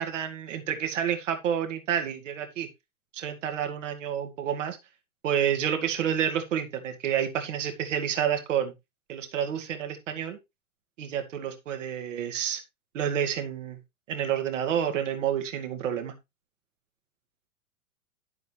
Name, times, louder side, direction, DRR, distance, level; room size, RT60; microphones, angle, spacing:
voice 1, 0.0-2.7 3.1-4.8 5.2-8.7 9.1-10.4 11.0-12.6 12.9-13.8 14.1-16.1, right 9 dB, 60° right, 6 dB, 2.2 m, -29 dB
11.0 x 7.9 x 3.3 m, 0.23 s
figure-of-eight pair, 95°, 43 cm